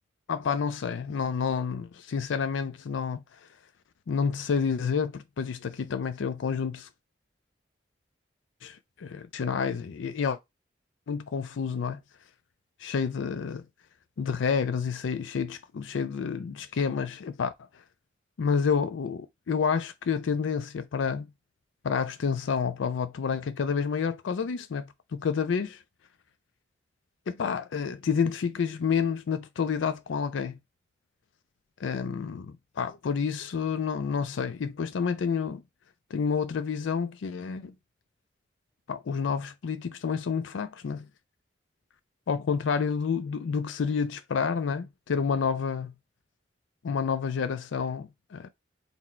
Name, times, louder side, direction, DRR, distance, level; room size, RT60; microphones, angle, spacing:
voice 1, 0.3-3.2 4.1-6.9 8.6-10.4 11.1-12.0 12.8-13.6 14.2-17.5 18.4-21.3 21.8-25.8 27.3-30.5 31.8-35.6 36.1-37.7 38.9-41.1 42.3-45.9 46.8-48.5, left 6 dB, 80° left, 0.4 m, -29 dB
4.1 x 2.1 x 4.3 m
head